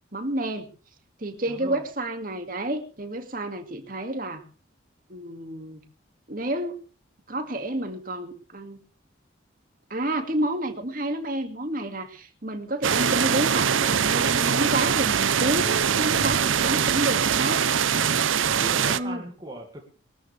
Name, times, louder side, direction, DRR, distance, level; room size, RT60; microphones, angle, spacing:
voice 1, 0.1-0.7 1.2-4.4 5.1-5.8 6.3-6.8 7.3-8.8 9.9-17.6 18.9-19.2, right 1 dB, 45° right, 6 dB, 2.3 m, -30 dB
voice 2, 1.5-1.8 18.0-18.3 18.6-19.8, right 1 dB, 20° right, -1 dB, 2.3 m, -38 dB
sound 1, 12.8-19.0, right 7 dB, 85° right, 0.7 m, -22 dB
22.0 x 13.5 x 3.4 m, 0.35 s
head